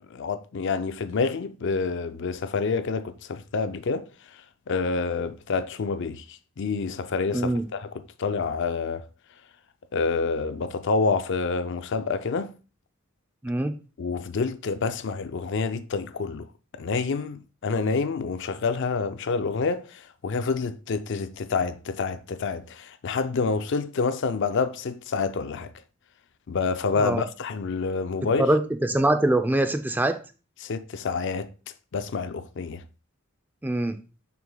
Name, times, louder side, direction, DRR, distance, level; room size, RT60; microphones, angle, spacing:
voice 1, 0.1-4.1 4.7-9.1 9.9-12.5 14.0-16.5 16.8-25.7 26.5-28.5 30.6-31.5 31.9-32.8, left 4 dB, 55° left, 0.4 m, -28 dB
voice 2, 7.3-7.6 13.4-13.8 27.0-27.2 28.4-30.2 33.6-34.0, right 1 dB, 10° right, 0.4 m, -23 dB
7.3 x 5.9 x 2.2 m
head